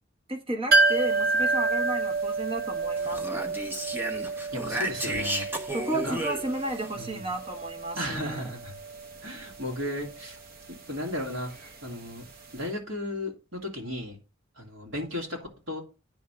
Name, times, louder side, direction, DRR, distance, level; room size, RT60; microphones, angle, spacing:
voice 1, 0.3-3.5 5.7-8.4, right 1 dB, 30° right, 1.3 m, -33 dB
sound 1, 0.7-12.3 12.6-12.7, right 3 dB, 50° right, 0.9 m, -30 dB
Speech, 3.0-6.9, right 1 dB, 10° right, 0.9 m, -33 dB
voice 2, 4.5-5.5 6.0-6.2 6.9-7.3 8.0-8.7 9.2-10.4 10.7-12.2 12.5-14.2 14.6-15.4 15.7-15.8, left 1 dB, 85° right, 2.9 m, -35 dB
9.2 x 3.7 x 6.1 m
head